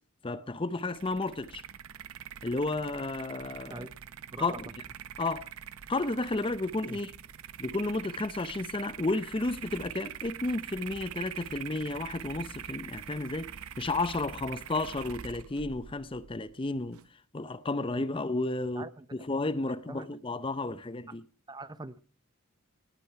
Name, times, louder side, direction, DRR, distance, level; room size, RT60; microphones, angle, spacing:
voice 1, 0.2-1.6 2.4-3.9 4.4-4.7 5.2-5.5 5.9-7.1 7.6-17.0 17.3-21.2, left 2 dB, 25° left, 0.6 m, -32 dB
sound 1, 0.7-17.1, right 9 dB, 75° right, 0.7 m, -44 dB
voice 2, 18.7-19.3 19.7-20.1 21.1-21.2 21.5-22.0, right 2 dB, 20° right, 0.6 m, -43 dB
19.5 x 9.0 x 5.7 m
head